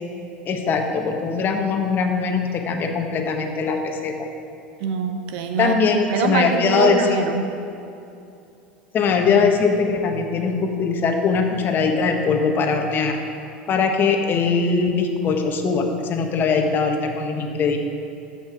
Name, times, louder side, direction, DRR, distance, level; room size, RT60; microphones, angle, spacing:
voice 1, 0.4-4.1 5.6-7.0 8.9-13.2 13.7-17.8, left 5 dB, 40° left, 4 dB, 1.3 m, -21 dB
voice 2, 4.8-5.8 6.1-7.5, right 7 dB, 65° right, 6 dB, 0.9 m, -23 dB
14.0 x 5.7 x 4.9 m, 2.6 s
hypercardioid pair, 85°, 5 cm